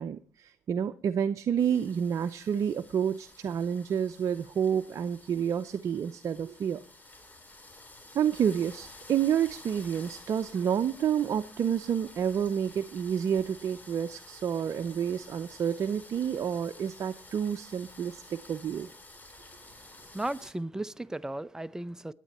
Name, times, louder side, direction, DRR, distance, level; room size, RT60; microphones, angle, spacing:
voice 1, 0.0-6.8 8.1-18.9, right 8 dB, 50° right, 0.6 m, -29 dB
sound 1, 1.6-20.5, left 2 dB, 25° left, 3.9 m, -51 dB
voice 2, 20.1-22.1, right 1 dB, 10° right, 0.6 m, -35 dB
21.0 x 9.1 x 4.3 m
supercardioid pair, 70°, 7 cm